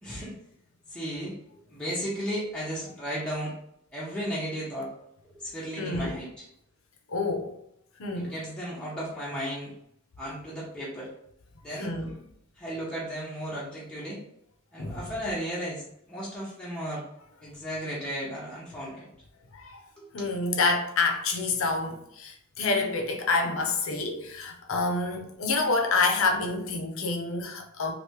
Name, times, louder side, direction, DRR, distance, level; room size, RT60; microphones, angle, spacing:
voice 1, 0.0-0.4 0.9-1.4 1.7-3.6 3.9-4.9 5.3-6.5 8.1-9.7 10.2-11.1 11.6-12.0 12.6-14.2 14.7-17.1 17.4-19.1 20.0-20.3, equal, 5° left, -7 dB, 0.6 m, -35 dB
voice 2, 5.8-6.2 7.1-7.5 8.0-8.3 11.8-12.1 14.8-15.1 19.5-19.8 20.1-27.9, left 3 dB, 65° left, 3 dB, 0.6 m, -28 dB
3.3 x 2.6 x 2.8 m, 0.75 s
head